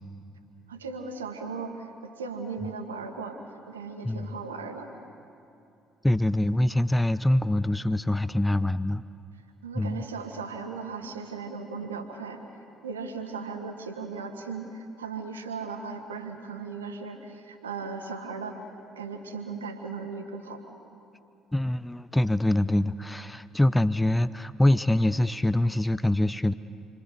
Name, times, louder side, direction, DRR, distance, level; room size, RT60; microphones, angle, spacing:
voice 1, 0.7-3.4 3.7-4.9 9.6-12.4 12.8-18.6 18.9-20.6, right 4 dB, 80° right, 5 dB, 1.7 m, -37 dB
voice 2, 4.0-4.4 6.0-9.0 9.8-10.0 21.5-26.5, left 1 dB, 10° left, 15 dB, 0.6 m, -24 dB
29.0 x 23.5 x 6.7 m, 2.8 s
figure-of-eight pair, 50°, 0 cm